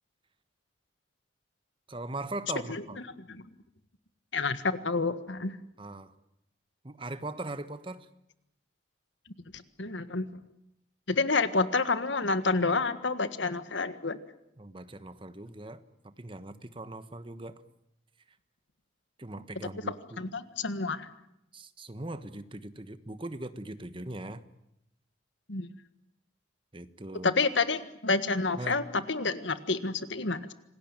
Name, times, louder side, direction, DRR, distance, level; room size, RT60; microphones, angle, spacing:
voice 1, 1.9-3.0 5.8-6.1 6.8-8.1 14.6-17.6 19.2-20.2 21.5-24.4 26.7-27.3 28.6-28.8, right 2 dB, 25° right, 12 dB, 1.2 m, -40 dB
voice 2, 4.3-5.6 9.5-10.3 11.1-14.2 19.8-21.1 25.5-25.7 27.2-30.5, left 3 dB, 75° left, 12 dB, 1.6 m, -29 dB
27.0 x 19.0 x 9.0 m, 0.85 s
head